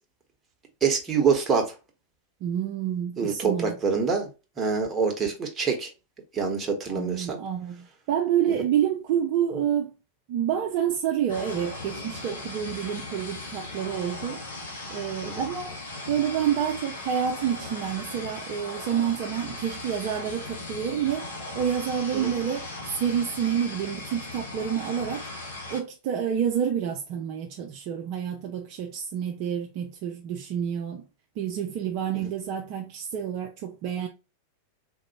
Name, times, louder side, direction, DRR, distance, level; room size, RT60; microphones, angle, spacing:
voice 1, 0.8-1.7 3.2-4.3 4.6-5.9 6.3-7.4 15.2-15.4 22.1-22.3, right 5 dB, 20° right, 1.2 m, -25 dB
voice 2, 2.4-3.7 6.9-9.9 10.3-14.4 14.9-15.7 16.1-21.3 21.5-22.7 23.0-25.3 25.7-31.0 31.4-34.1, right 9 dB, 45° right, 0.5 m, -28 dB
sound 1, 11.3-25.8, left 2 dB, 65° left, 1.1 m, -38 dB
3.9 x 2.6 x 2.7 m
figure-of-eight pair, 90°, 0 cm